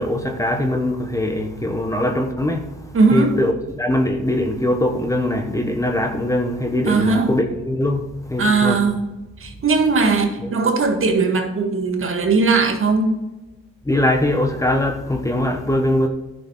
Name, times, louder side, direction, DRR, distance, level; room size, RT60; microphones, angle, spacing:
voice 1, 0.0-8.8 10.4-10.5 13.8-16.1, left 1 dB, 10° left, 1.2 m, -22 dB
voice 2, 2.9-3.3 6.9-7.3 8.4-9.0 9.4-13.2, right 4 dB, 45° right, 1.8 m, -18 dB
11.0 x 6.7 x 4.4 m
cardioid pair, 90°, 30 cm